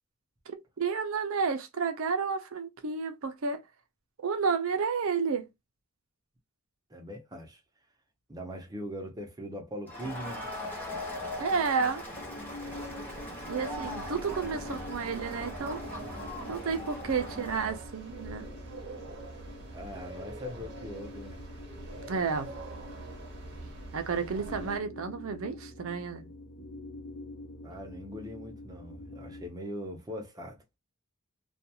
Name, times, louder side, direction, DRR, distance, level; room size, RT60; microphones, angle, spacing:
voice 1, 0.5-3.6 4.2-5.5 11.4-12.0 13.5-15.8 16.5-18.5 22.1-22.5 23.9-26.2, right 5 dB, 70° right, 0.5 m, -31 dB
voice 2, 6.9-7.6 8.3-10.5 19.7-21.4 27.6-30.6, equal, 20° right, 0.7 m, -41 dB
Crowd, 9.9-17.8, left 1 dB, 10° left, 0.9 m, -40 dB
sound 1, 12.2-29.5, left 1 dB, 45° left, 0.8 m, -46 dB
sound 2, 12.6-24.8, right 2 dB, 55° right, 0.9 m, -45 dB
2.4 x 2.2 x 2.7 m
head